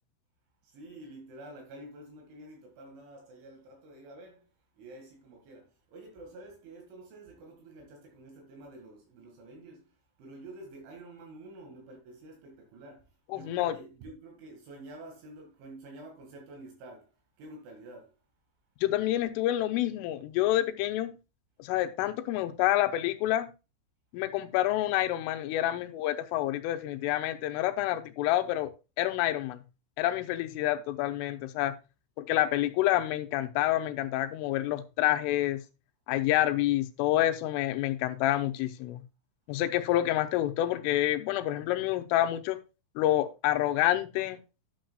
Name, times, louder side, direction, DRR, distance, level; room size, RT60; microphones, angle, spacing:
voice 1, 0.6-4.5 4.8-17.1 17.4-18.2, right 2 dB, 70° right, 4.2 m, -49 dB
voice 2, 13.3-13.7 18.8-21.2 21.6-23.5 24.1-28.7 29.0-29.6 30.0-31.7 32.2-35.6 36.1-39.0 39.5-42.6 43.0-44.4, left 14 dB, 90° left, 3.3 m, -28 dB
12.0 x 7.8 x 2.3 m
omnidirectional pair, 5.7 m